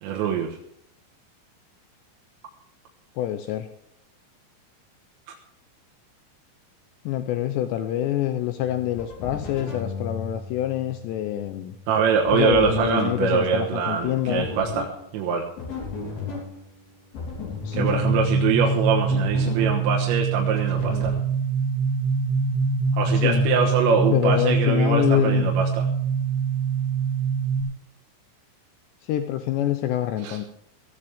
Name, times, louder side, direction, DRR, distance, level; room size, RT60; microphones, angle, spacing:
voice 1, 0.0-0.6 11.9-15.5 17.7-21.2 22.9-25.9 30.2-30.4, right 6 dB, 80° right, 0 dB, 3.5 m, -24 dB
voice 2, 3.2-3.7 7.1-11.7 12.3-14.5 17.6-18.0 23.1-23.5 24.1-25.5 29.0-30.5, left 12 dB, 80° left, 8 dB, 2.9 m, -26 dB
sound 1, 8.6-21.2, left 5 dB, 60° left, 5.1 m, -36 dB
sound 2, 17.8-27.6, right 4 dB, 25° right, 2.2 m, -24 dB
18.5 x 14.0 x 3.5 m, 0.71 s
omnidirectional pair, 5.2 m